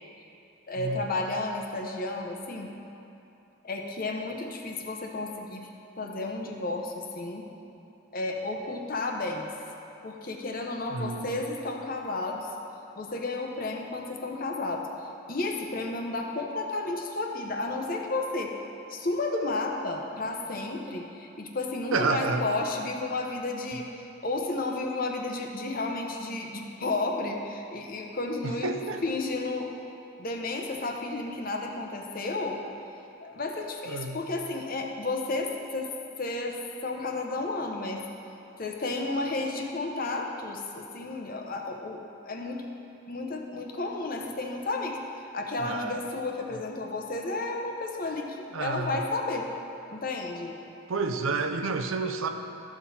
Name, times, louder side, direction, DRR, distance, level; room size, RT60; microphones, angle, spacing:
voice 1, 0.7-2.7 3.6-5.7 6.0-7.5 8.1-9.5 10.0-12.5 12.9-14.9 15.3-18.5 18.9-23.9 24.2-28.7 29.0-29.7 30.2-32.6 33.2-35.9 36.2-38.0 38.6-42.7 43.1-45.0 45.3-49.5 49.9-50.5, left 2 dB, 45° left, 2 dB, 0.8 m, -32 dB
voice 2, 10.9-11.4 21.9-22.5 28.4-29.0 33.9-34.2 45.6-46.0 48.5-49.0 50.9-52.3, right 4 dB, 80° right, 6 dB, 0.6 m, -30 dB
13.0 x 5.9 x 4.2 m, 2.8 s
head